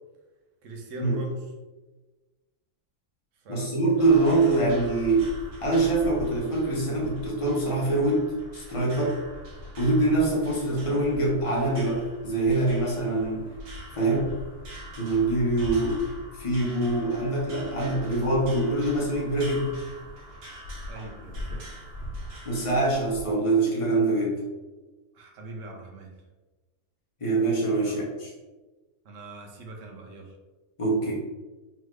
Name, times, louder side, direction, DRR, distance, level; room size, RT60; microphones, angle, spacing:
voice 1, 0.6-1.4 3.4-3.7 15.7-15.9 20.9-21.7 25.1-26.1 27.7-28.0 29.0-30.3, right 2 dB, 60° right, 1 dB, 1.1 m, -42 dB
voice 2, 3.5-5.3 5.6-9.2 9.8-13.4 14.0-14.3 15.0-16.0 16.3-19.7 22.4-24.4 27.2-28.3 30.8-31.1, right 2 dB, 25° left, -4 dB, 1.0 m, -24 dB
sound 1, 4.0-23.2, equal, 80° right, 1.6 m, -42 dB
3.9 x 3.2 x 3.2 m, 1.2 s
omnidirectional pair, 1.6 m